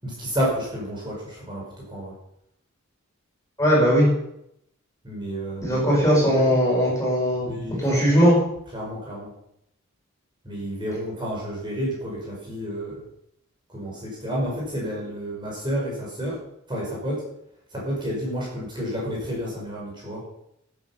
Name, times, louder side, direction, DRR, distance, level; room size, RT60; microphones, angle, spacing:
voice 1, 0.0-2.1 5.0-6.6 7.4-8.2 8.7-9.3 10.4-13.0 13.7-16.4 16.7-17.2 17.7-20.2, equal, 20° right, -4 dB, 5.1 m, -30 dB
voice 2, 3.6-4.1 5.6-7.5 7.8-8.4, equal, 15° left, -5 dB, 5.4 m, -19 dB
13.5 x 9.0 x 5.7 m, 0.77 s
head